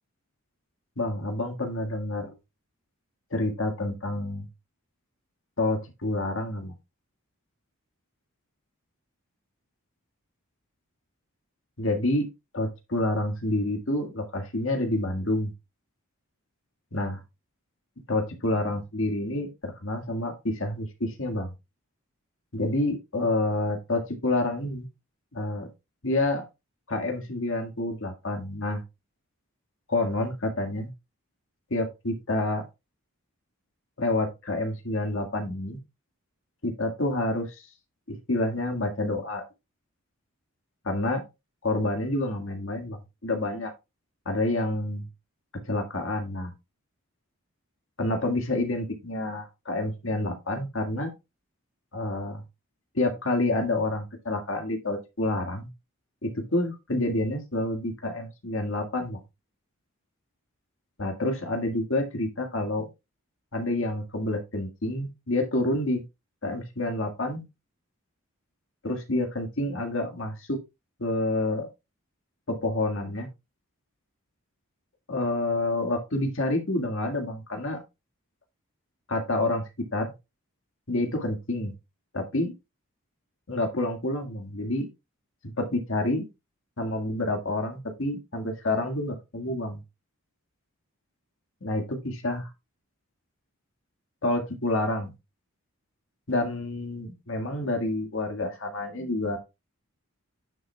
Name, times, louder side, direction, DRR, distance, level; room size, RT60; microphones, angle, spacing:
voice 1, 1.0-2.4 3.3-4.5 5.6-6.7 11.8-12.3 12.5-15.5 16.9-17.2 18.1-21.5 22.5-24.9 25.3-25.7 26.0-26.5 26.9-28.8 29.9-30.9 31.7-32.7 34.0-35.8 36.6-37.6 38.1-39.5 40.8-41.2 41.6-43.7 44.3-45.1 45.5-46.5 48.0-51.1 51.9-52.4 52.9-55.7 56.2-59.2 61.0-62.9 63.5-66.0 66.4-67.4 68.8-70.6 71.0-71.7 72.5-73.3 75.1-77.8 79.1-80.1 80.9-81.7 82.1-82.5 83.5-84.9 85.4-86.3 86.8-89.8 91.6-92.5 94.2-95.1 96.3-99.4, left 2 dB, 60° left, 4 dB, 1.8 m, -28 dB
9.2 x 7.5 x 2.3 m, 0.24 s
head